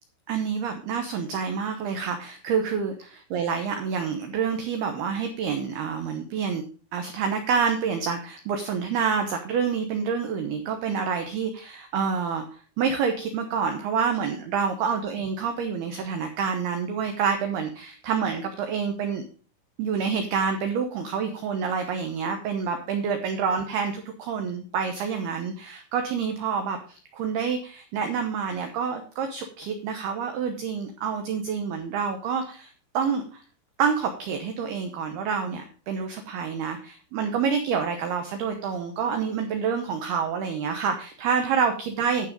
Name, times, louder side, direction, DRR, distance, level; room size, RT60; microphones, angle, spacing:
voice 1, 0.3-6.6 6.9-19.2 19.8-33.4 33.8-42.3, right 6 dB, 85° right, 5 dB, 2.2 m, -28 dB
11.5 x 5.9 x 5.1 m, 0.41 s
omnidirectional pair, 6.0 m